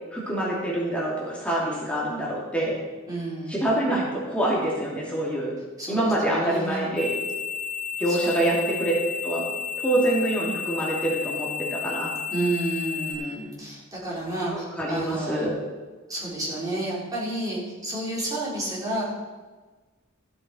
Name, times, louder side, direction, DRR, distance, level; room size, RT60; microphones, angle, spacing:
voice 1, 0.1-2.8 3.5-5.5 5.9-7.1 8.0-8.9 9.2-9.5 9.8-12.1 14.5-15.6, right 1 dB, 5° left, -5 dB, 2.3 m, -26 dB
voice 2, 3.1-3.7 5.8-7.0 8.1-8.5 12.3-15.5 16.1-19.0, right 1 dB, 20° right, -7 dB, 3.8 m, -30 dB
sound 1, 7.0-13.1, left 6 dB, 30° left, 1.5 m, -32 dB
14.0 x 8.5 x 4.3 m, 1.3 s
head